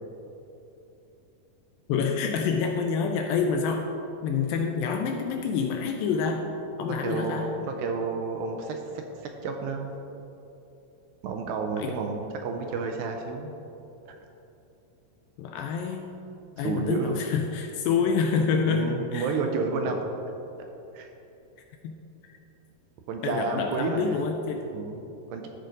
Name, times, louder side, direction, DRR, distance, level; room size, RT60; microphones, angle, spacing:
voice 1, 1.9-3.9 4.2-6.5 6.8-7.5 11.8-12.0 15.4-16.2 16.6-19.3 19.9-20.0 21.8-22.0 22.3-22.4 23.2-24.7, left 5 dB, 85° left, 3 dB, 2.1 m, -27 dB
voice 2, 7.0-9.9 11.2-13.5 16.6-17.2 18.7-20.1 20.9-21.1 23.1-24.2 24.7-25.5, right 4 dB, 80° right, 3 dB, 2.2 m, -31 dB
13.0 x 4.8 x 3.9 m, 2.9 s
omnidirectional pair, 4.4 m